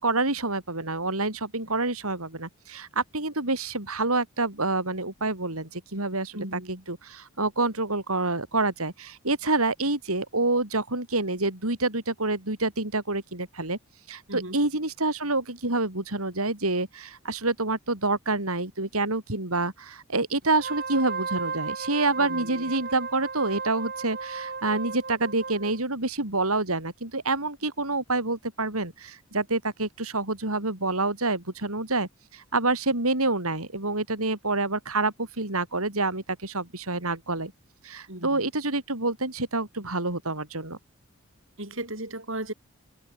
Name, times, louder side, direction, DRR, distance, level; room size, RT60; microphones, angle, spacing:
voice 1, 0.0-6.4 6.9-13.8 14.1-37.5 37.8-40.8, right 2 dB, 75° right, 6.0 m, -27 dB
voice 2, 6.3-6.8 14.3-14.6 22.2-22.7 38.1-38.5 41.6-42.5, right 1 dB, 60° right, 7.9 m, -36 dB
Wind instrument woodwind instrument, 20.5-25.8, right 5 dB, 45° right, 5.2 m, -35 dB
head